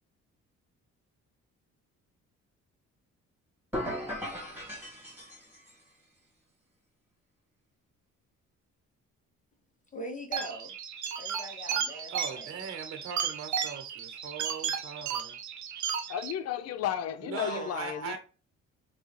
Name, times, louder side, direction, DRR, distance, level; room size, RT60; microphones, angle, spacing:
sound 1, 3.7-5.8, equal, 5° right, 1.9 m, -37 dB
voice 1, 9.9-10.8 11.2-12.7 17.3-18.2, left 1 dB, 25° left, 0.9 m, -42 dB
sound 2, 10.3-16.3, right 8 dB, 70° right, 0.8 m, -34 dB
voice 2, 12.1-15.4 17.2-18.2, right 6 dB, 45° right, 0.9 m, -40 dB
voice 3, 16.1-18.2, left 9 dB, 55° left, 0.5 m, -33 dB
6.0 x 2.3 x 3.2 m
cardioid pair, 90°, 30 cm